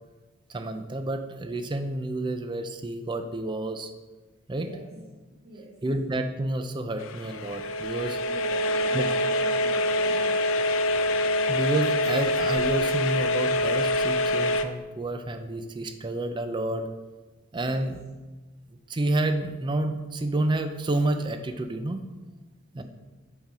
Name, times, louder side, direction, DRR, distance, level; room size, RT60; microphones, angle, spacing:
voice 1, 0.5-3.9 4.5-4.7 5.8-8.2 8.9-9.1 11.3-16.9 17.5-18.0 18.7-22.0 22.7-22.8, right 2 dB, 20° right, 8 dB, 0.4 m, -29 dB
voice 2, 4.5-5.1 5.4-5.7 8.2-10.4 17.5-17.9 22.7-22.8, right 1 dB, 45° right, -5 dB, 1.2 m, -42 dB
sound 1, 7.0-14.6, left 1 dB, 65° left, 0.4 m, -25 dB
5.8 x 3.8 x 5.5 m, 1.2 s
head